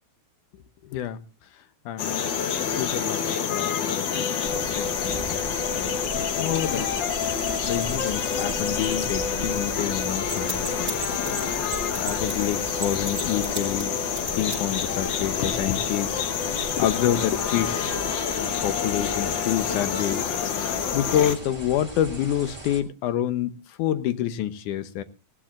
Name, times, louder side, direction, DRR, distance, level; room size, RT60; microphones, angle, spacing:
voice 1, 1.9-2.3 2.8-4.3 4.6-6.9 7.7-11.0 12.0-13.9 14.4-18.0 18.4-20.3 20.9-25.0, left 11 dB, 90° left, 2.5 m, -28 dB
sound 1, 2.0-21.3, left 7 dB, 65° left, 1.2 m, -27 dB
sound 2, 4.4-22.8, right 3 dB, 10° right, 2.1 m, -39 dB
sound 3, 9.2-9.3 9.5-9.6 9.9-12.4 12.8-15.0, right 3 dB, 30° right, 4.1 m, -34 dB
19.0 x 16.0 x 2.5 m
omnidirectional pair, 3.4 m